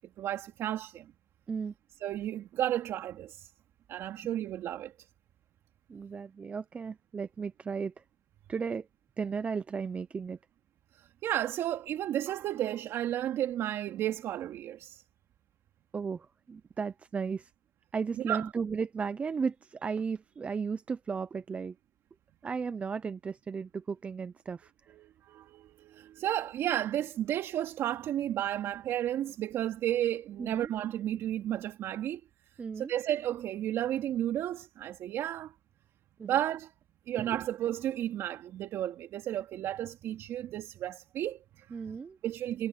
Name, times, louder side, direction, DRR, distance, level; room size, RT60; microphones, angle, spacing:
voice 1, 0.2-1.1 2.0-3.5 3.9-4.9 10.9-15.0 18.2-18.5 25.0-32.2 32.8-35.5 36.2-36.7 37.1-41.8 42.2-42.7, right 12 dB, 50° right, 2.6 m, -33 dB
voice 2, 5.9-8.0 8.5-8.9 9.2-10.4 15.9-17.5 17.9-21.8 22.4-24.7 30.4-30.7 32.6-32.9 36.2-36.4 37.1-37.4 41.7-42.2, right 5 dB, 20° right, 0.7 m, -35 dB
supercardioid pair, 115°, 6 cm